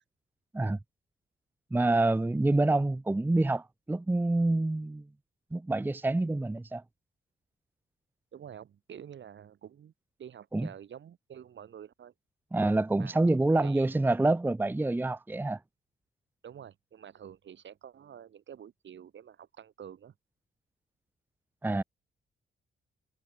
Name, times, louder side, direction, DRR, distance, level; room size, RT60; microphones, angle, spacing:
voice 1, 1.7-5.0 5.5-6.8 10.5-10.7 12.5-15.6 21.6-21.8, right 2 dB, 10° right, 0.7 m, -27 dB
voice 2, 8.3-9.9 10.2-12.1 13.0-13.9 16.4-20.1, right 9 dB, 60° right, 1.8 m, -48 dB
cardioid pair, 100°, 21 cm